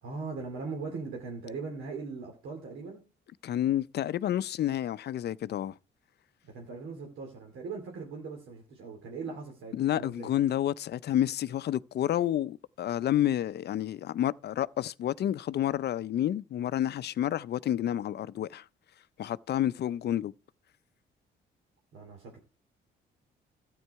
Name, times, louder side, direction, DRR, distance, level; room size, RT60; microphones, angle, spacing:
voice 1, 0.0-3.0 6.4-10.3 21.9-22.4, right 4 dB, 90° right, 2.5 m, -40 dB
voice 2, 3.4-5.7 9.8-18.6 19.2-20.3, left 11 dB, 55° left, 0.5 m, -29 dB
12.5 x 9.3 x 4.6 m
cardioid pair, 90°, 20 cm